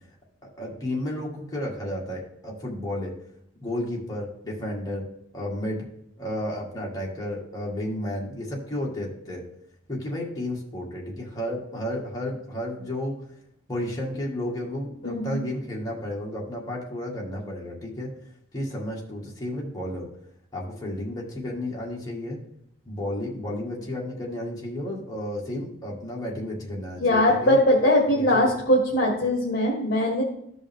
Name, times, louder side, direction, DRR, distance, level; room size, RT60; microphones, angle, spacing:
voice 1, 0.4-3.1 3.6-5.1 5.3-5.9 6.2-9.4 9.9-13.2 13.7-18.1 18.5-20.1 20.5-22.4 22.9-27.6 28.1-28.5, left 1 dB, 20° left, -3 dB, 2.0 m, -32 dB
voice 2, 15.0-15.4 27.0-30.2, left 1 dB, 45° left, -2 dB, 1.5 m, -21 dB
13.5 x 5.3 x 3.6 m, 0.75 s
head